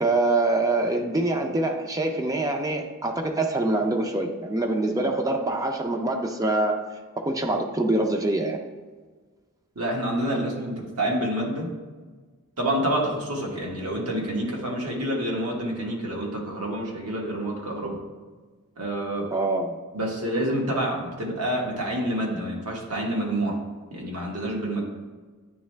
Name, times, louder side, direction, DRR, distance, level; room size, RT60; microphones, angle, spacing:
voice 1, 0.0-6.8 7.3-8.6 19.3-19.8, right 2 dB, 15° right, 3 dB, 0.4 m, -25 dB
voice 2, 9.7-11.7 12.6-18.0 18.8-19.3 19.9-23.6 23.9-24.8, right 1 dB, 85° right, -1 dB, 1.4 m, -28 dB
9.4 x 3.2 x 3.2 m, 1.4 s
head